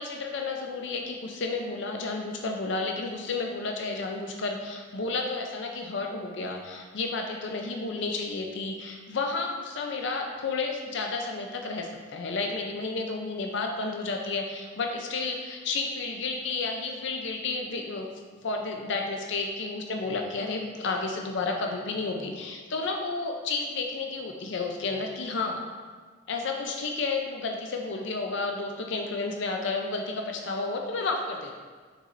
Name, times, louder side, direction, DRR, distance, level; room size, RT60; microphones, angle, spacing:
voice 1, 0.0-18.1 18.4-25.6 26.3-31.6, left 3 dB, 65° left, 2 dB, 0.5 m, -31 dB
6.6 x 6.2 x 2.6 m, 1.5 s
head